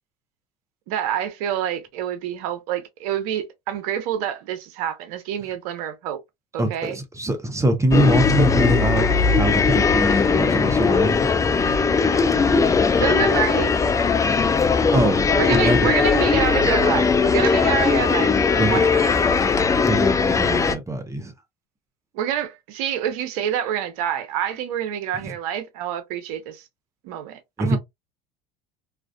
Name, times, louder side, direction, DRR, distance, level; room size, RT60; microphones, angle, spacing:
voice 1, 0.9-6.2 6.5-7.0 13.0-13.9 15.3-19.4 22.1-26.6 27.0-27.8, right 10 dB, 65° right, 0.6 m, -27 dB
voice 2, 6.6-11.3 14.9-15.9 18.5-18.8 19.8-21.3 25.2-25.3 27.6-27.8, right 1 dB, 15° right, 0.7 m, -23 dB
sound 1, 7.9-20.7, left 5 dB, 15° left, 0.4 m, -19 dB
2.4 x 2.3 x 2.2 m
hypercardioid pair, 75°, 20 cm